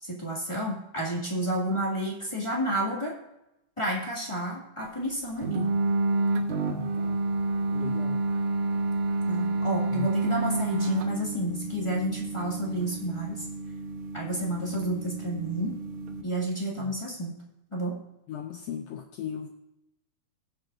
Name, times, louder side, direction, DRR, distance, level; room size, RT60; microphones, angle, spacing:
voice 1, 0.0-3.1 3.8-5.7 9.3-13.4 14.1-15.7 16.2-17.4 17.7-18.0, right 1 dB, 15° left, -4 dB, 1.2 m, -30 dB
sound 1, 5.4-16.2, right 2 dB, 80° right, 2.3 m, -29 dB
voice 2, 6.7-7.2 7.7-8.2 9.5-9.7 9.9-10.1 18.3-19.5, left 9 dB, 80° left, 5 dB, 1.5 m, -37 dB
19.5 x 7.4 x 2.5 m, 0.89 s
omnidirectional pair, 3.5 m